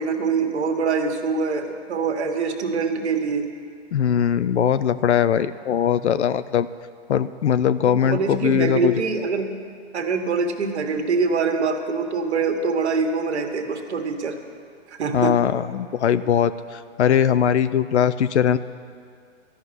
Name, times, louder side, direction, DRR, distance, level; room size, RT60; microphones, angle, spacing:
voice 1, 0.0-3.5 7.8-9.5 9.9-14.4 15.0-15.4, right 4 dB, 70° right, 5 dB, 1.5 m, -24 dB
voice 2, 3.9-6.7 7.1-9.0 15.1-18.6, left 8 dB, 75° left, 14 dB, 0.6 m, -20 dB
13.5 x 6.1 x 9.6 m, 2.2 s
hypercardioid pair, 145°, 35 cm